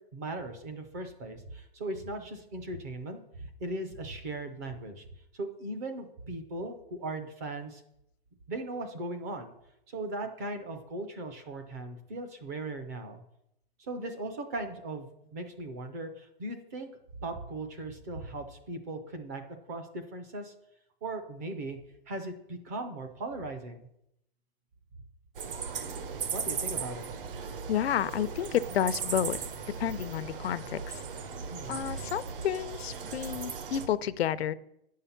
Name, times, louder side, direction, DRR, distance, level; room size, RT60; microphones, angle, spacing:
voice 1, 0.0-5.1 5.3-7.8 8.5-9.5 9.9-13.2 13.8-16.9 17.2-19.4 19.7-20.5 21.0-21.8 22.1-23.9 26.3-27.0 31.5-31.9, right 2 dB, 15° right, 7 dB, 0.4 m, -38 dB
sound 1, 25.4-33.9, right 6 dB, 60° right, 1.2 m, -37 dB
voice 2, 27.7-29.4 29.8-30.8 31.7-34.5, left 10 dB, 90° left, 15 dB, 0.7 m, -30 dB
9.2 x 5.7 x 7.0 m, 0.80 s
hypercardioid pair, 170°, 30 cm